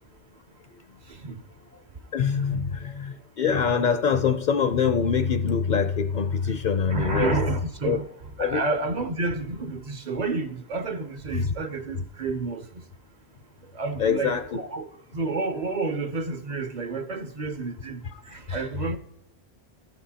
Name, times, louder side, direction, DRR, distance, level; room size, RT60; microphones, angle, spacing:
voice 1, 1.1-1.4 2.3-2.6 6.9-8.1 8.4-12.8 13.7-19.0, right 3 dB, 50° right, 0.6 m, -30 dB
voice 2, 2.1-7.4 7.9-8.0 8.4-8.6 11.3-11.5 14.0-14.4, left 6 dB, 55° left, 0.6 m, -24 dB
14.5 x 6.0 x 2.8 m
omnidirectional pair, 1.1 m